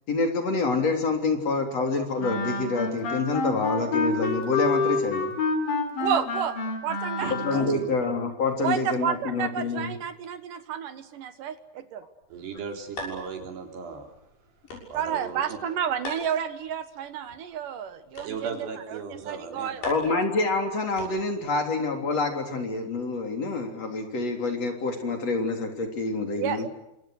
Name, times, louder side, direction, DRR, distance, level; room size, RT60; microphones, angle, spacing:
voice 1, 0.1-5.3 7.3-9.9 19.8-26.6, left 3 dB, 40° left, 4 dB, 4.3 m, -27 dB
Wind instrument woodwind instrument, 2.2-7.9, left 3 dB, 60° left, 5.2 m, -28 dB
voice 2, 6.0-6.6 6.8-7.3 8.6-12.0 14.9-19.9 26.4-26.7, right 8 dB, 65° right, 11 dB, 2.7 m, -31 dB
voice 3, 7.2-7.8 12.3-14.1 14.9-15.6 18.2-19.8, right 5 dB, 85° right, 4 dB, 5.7 m, -36 dB
sound 1, 12.2-21.5, left 1 dB, 80° left, 8.7 m, -44 dB
28.5 x 26.0 x 6.5 m, 0.88 s
omnidirectional pair, 4.6 m